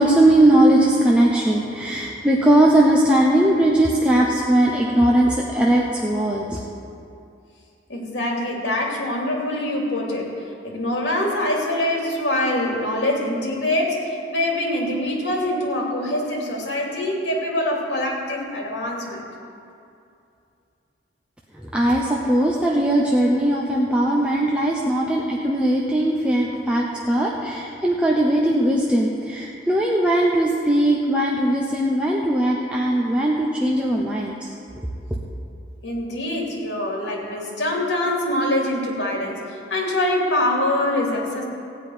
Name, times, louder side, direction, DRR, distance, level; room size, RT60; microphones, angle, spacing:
voice 1, 0.0-6.6 21.6-34.5, right 1 dB, 5° right, -3 dB, 0.8 m, -19 dB
voice 2, 7.9-10.3 10.6-19.2 35.8-41.4, left 1 dB, 60° left, -2 dB, 2.8 m, -24 dB
15.5 x 5.3 x 9.4 m, 2.5 s
head